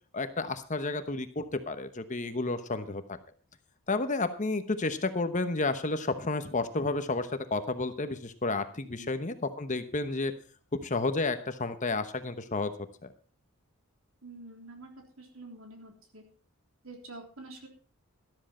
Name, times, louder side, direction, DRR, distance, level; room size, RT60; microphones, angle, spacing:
voice 1, 0.1-3.2 3.9-10.3 10.7-12.7, left 3 dB, 35° left, 10 dB, 1.0 m, -31 dB
voice 2, 14.2-14.9 15.2-16.2 16.8-17.7, right 2 dB, 65° right, 3 dB, 3.5 m, -47 dB
13.0 x 13.0 x 4.3 m, 0.39 s
head